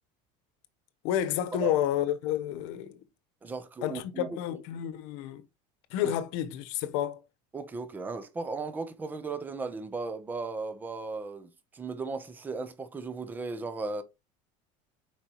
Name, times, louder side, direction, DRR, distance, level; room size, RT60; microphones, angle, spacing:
voice 1, 1.0-3.0 3.8-5.4 5.9-7.2, left 11 dB, 65° left, 1.0 m, -30 dB
voice 2, 3.4-4.4 6.0-6.1 7.5-14.0, right 4 dB, 10° right, 0.6 m, -36 dB
7.0 x 4.8 x 2.9 m
cardioid pair, 170°, 16 cm